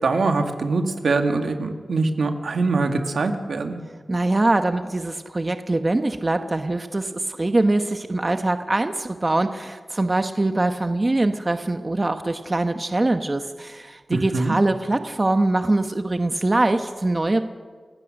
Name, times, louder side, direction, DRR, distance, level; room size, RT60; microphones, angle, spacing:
voice 1, 0.0-3.8 14.1-14.6, right 3 dB, 80° right, 5 dB, 2.0 m, -23 dB
voice 2, 4.1-17.4, right 2 dB, 30° right, 7 dB, 1.1 m, -23 dB
29.0 x 16.0 x 6.5 m, 1.5 s
wide cardioid pair, 85°, 0 cm